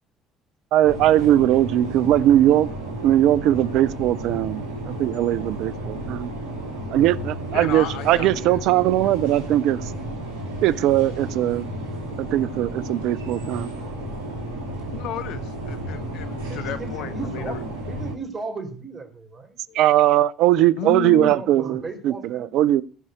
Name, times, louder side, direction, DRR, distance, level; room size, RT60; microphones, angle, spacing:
voice 1, 0.7-2.7 3.0-6.3 6.9-9.8 10.6-11.7 12.2-13.7 19.7-22.8, right 13 dB, 65° right, 0.5 m, -20 dB
sound 1, 0.8-18.1, right 1 dB, 80° right, 2.7 m, -33 dB
voice 2, 7.5-8.6 14.9-17.6 19.7-19.8 20.8-21.3, left 9 dB, 65° left, 1.1 m, -33 dB
voice 3, 16.5-17.6 17.9-19.6 21.0-22.5, right 4 dB, 35° right, 4.1 m, -35 dB
15.5 x 5.5 x 8.0 m
hypercardioid pair, 55°, 0 cm